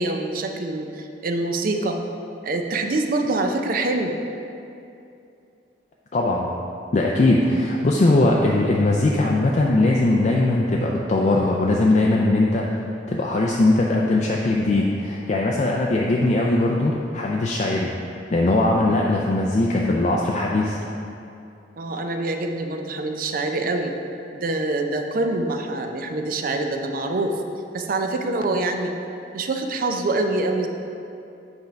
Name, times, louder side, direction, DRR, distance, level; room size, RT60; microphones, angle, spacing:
voice 1, 0.0-2.0 2.4-4.1 21.8-24.0 24.3-27.3 27.7-28.9 29.3-30.7, right 2 dB, 50° right, 4 dB, 0.5 m, -25 dB
voice 2, 6.1-6.5 6.9-12.7 13.1-17.9 18.3-20.8, left 2 dB, 40° left, -2 dB, 0.4 m, -20 dB
8.0 x 3.4 x 5.1 m, 2.7 s
head